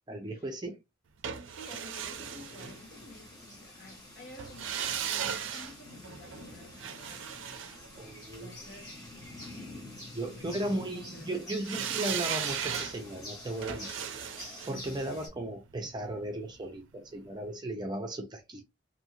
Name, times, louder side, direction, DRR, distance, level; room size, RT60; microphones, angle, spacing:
voice 1, 0.1-0.8 8.0-8.5 10.1-14.2 14.7-18.7, right 1 dB, 20° right, 0.5 m, -36 dB
sound 1, 1.2-3.3 4.4-8.6 11.6-16.6 16.9-17.0, right 8 dB, 70° right, 0.4 m, -37 dB
voice 2, 1.5-9.1 10.3-11.6, left 1 dB, 50° left, 1.1 m, -52 dB
sound 2, 2.1-15.3, left 1 dB, 20° left, 1.1 m, -47 dB
2.7 x 2.5 x 2.9 m
head